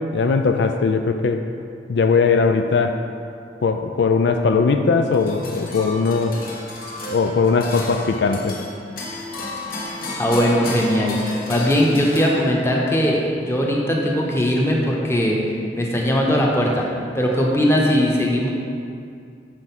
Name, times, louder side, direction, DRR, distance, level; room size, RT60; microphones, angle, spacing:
voice 1, 0.1-1.5 1.9-3.0 3.6-6.4 7.1-8.6, left 4 dB, 75° left, 6 dB, 0.4 m, -19 dB
sound 1, 5.1-12.8, left 2 dB, 55° left, 1.3 m, -32 dB
voice 2, 9.7-11.2 11.5-15.4 15.7-16.9 17.1-18.5, equal, 15° left, -2 dB, 1.0 m, -19 dB
7.7 x 4.8 x 5.9 m, 2.3 s
head